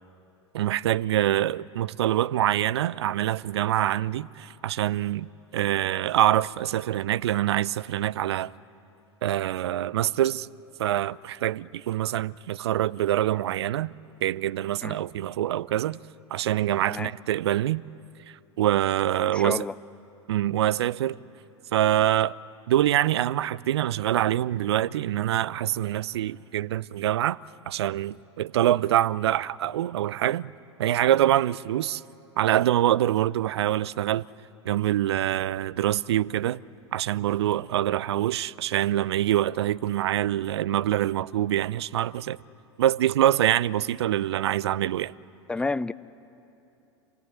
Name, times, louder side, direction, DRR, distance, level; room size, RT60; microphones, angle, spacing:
voice 1, 0.5-5.3 5.5-8.5 9.2-10.5 10.8-13.9 14.2-16.0 16.3-17.8 18.6-19.7 20.3-21.2 21.7-22.4 22.7-27.4 27.7-30.5 30.8-32.0 32.4-34.2 34.6-36.6 36.9-42.4 42.8-45.1, right 12 dB, 60° right, 0.5 m, -25 dB
voice 2, 19.3-19.7 45.5-45.9, left 3 dB, 5° left, 0.5 m, -30 dB
26.5 x 18.0 x 9.5 m
figure-of-eight pair, 80°, 15 cm